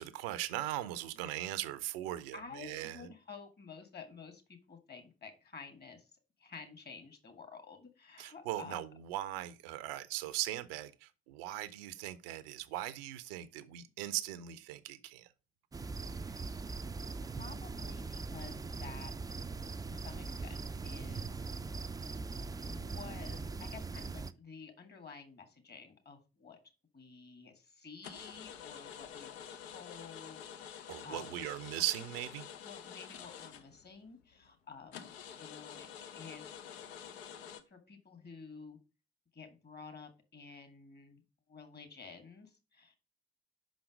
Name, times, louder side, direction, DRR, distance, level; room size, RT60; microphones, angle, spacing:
voice 1, 0.0-3.1 8.2-15.3 30.9-32.5, right 14 dB, 70° right, 0.6 m, -39 dB
voice 2, 2.3-4.4 4.7-6.1 6.4-8.8 16.1-16.5 17.2-19.1 19.9-21.4 22.7-26.6 26.9-31.4 32.6-36.5 37.7-38.8 39.3-41.2 41.5-43.0, left 5 dB, 35° left, 1.7 m, -51 dB
sound 1, 15.7-24.3, right 4 dB, 15° right, 0.4 m, -41 dB
sound 2, 28.0-34.1 34.5-34.6 34.9-37.6, left 8 dB, 80° left, 0.6 m, -48 dB
5.7 x 5.1 x 5.0 m
figure-of-eight pair, 40°, 30 cm